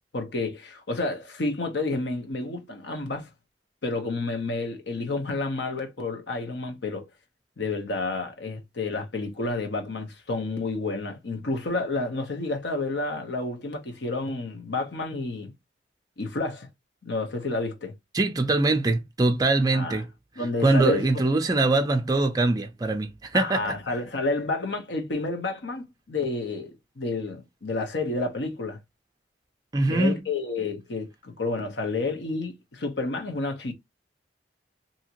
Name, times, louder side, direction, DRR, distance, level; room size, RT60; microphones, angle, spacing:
voice 1, 0.1-3.3 3.8-7.0 7.6-15.5 16.2-16.7 17.1-17.9 19.7-20.0 20.4-21.2 23.3-28.8 29.9-33.7, left 3 dB, 75° left, 0.8 m, -30 dB
voice 2, 18.1-20.1 20.6-23.8 29.7-30.2, right 2 dB, 20° right, 0.4 m, -23 dB
2.8 x 2.5 x 2.8 m
head